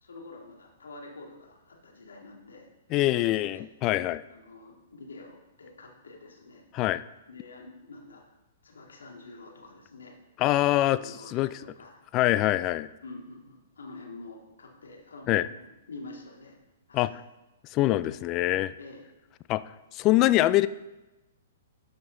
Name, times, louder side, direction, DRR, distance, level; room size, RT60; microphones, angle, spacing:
voice 1, 0.0-3.6 4.3-6.6 7.3-8.3 8.6-10.2 10.7-12.0 13.0-16.6 16.9-17.1 18.8-19.0, left 3 dB, 80° left, 0 dB, 2.2 m, -47 dB
voice 2, 2.9-4.2 6.7-7.0 10.4-11.0 11.3-11.6 12.1-12.9 15.3-15.5 16.9-17.1 17.7-18.8 19.5-19.6 19.9-20.7, left 16 dB, 35° left, 15 dB, 0.4 m, -24 dB
12.0 x 5.2 x 3.8 m, 1.0 s
hypercardioid pair, 120°, 0 cm